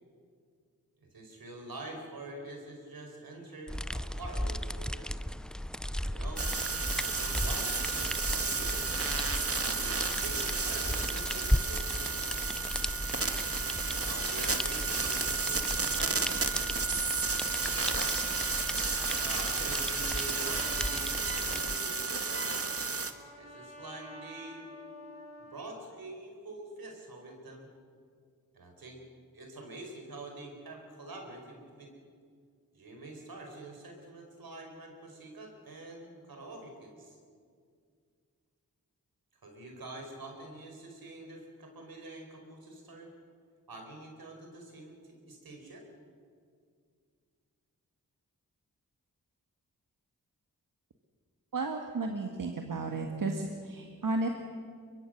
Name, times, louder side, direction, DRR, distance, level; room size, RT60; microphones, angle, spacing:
voice 1, 1.1-5.2 6.0-6.5 6.9-9.0 9.6-12.4 13.9-16.8 19.1-22.5 23.3-24.7 25.4-27.7 28.5-29.0 29.3-31.9 32.7-37.2 39.4-43.1 43.7-45.8, right 2 dB, 80° right, 2 dB, 4.7 m, -46 dB
sound 1, 3.7-21.8, equal, ahead, 0.6 m, -36 dB
sound 2, 6.4-23.1, right 4 dB, 40° right, 1.7 m, -32 dB
Trumpet, 20.3-25.8, equal, 20° right, 6.0 m, -50 dB
voice 2, 51.5-54.3, right 3 dB, 65° right, 3 dB, 1.8 m, -33 dB
23.0 x 22.5 x 6.6 m, 2.2 s
cardioid pair, 45°, 35 cm